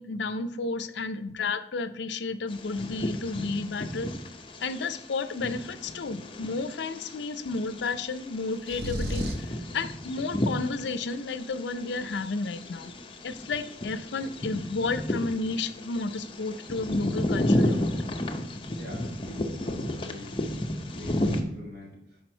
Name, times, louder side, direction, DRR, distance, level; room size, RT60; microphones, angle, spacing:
voice 1, 0.0-4.1 4.6-9.2 9.7-12.9 13.2-18.0, left 3 dB, 85° left, 11 dB, 0.5 m, -32 dB
Bird vocalization bird call bird song, 2.5-21.4, left 1 dB, 30° left, 0.6 m, -33 dB
sound 1, 8.7-9.5, equal, 60° right, 0.9 m, -31 dB
voice 2, 18.8-22.2, equal, 75° right, -4 dB, 2.5 m, -44 dB
6.1 x 5.0 x 4.4 m, 0.78 s
head